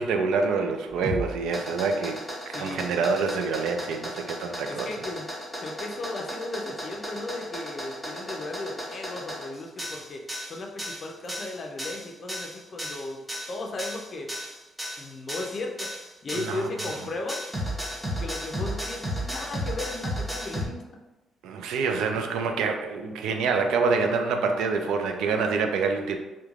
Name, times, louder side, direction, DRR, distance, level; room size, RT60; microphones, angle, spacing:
voice 1, 0.0-2.2 2.5-4.9 16.3-16.7 21.4-26.2, right 4 dB, 85° right, 5 dB, 0.3 m, -26 dB
sound 1, 0.9-20.7, equal, 5° right, 0.6 m, -34 dB
voice 2, 2.5-3.0 4.7-5.3 5.6-10.2 10.5-13.2 13.5-14.3 15.0-15.9 16.2-17.5 18.2-20.8, left 2 dB, 40° left, 2 dB, 0.4 m, -36 dB
3.1 x 2.1 x 2.4 m, 1.1 s
cardioid pair, 130°, 0 cm